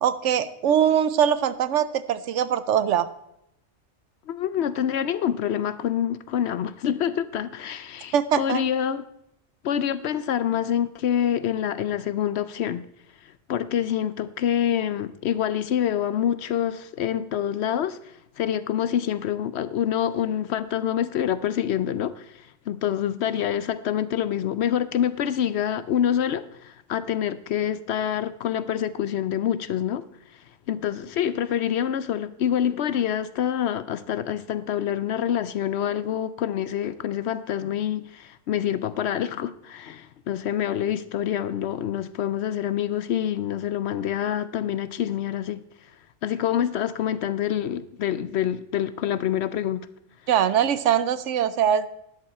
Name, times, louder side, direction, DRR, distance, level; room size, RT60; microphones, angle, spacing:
voice 1, 0.0-3.1 8.1-8.6 50.3-51.9, right 9 dB, 70° right, 1.0 m, -22 dB
voice 2, 4.3-9.1 9.6-12.8 13.2-30.0 30.3-45.6 46.2-49.9, left 10 dB, 65° left, 0.8 m, -26 dB
12.0 x 10.5 x 4.2 m
omnidirectional pair, 1.3 m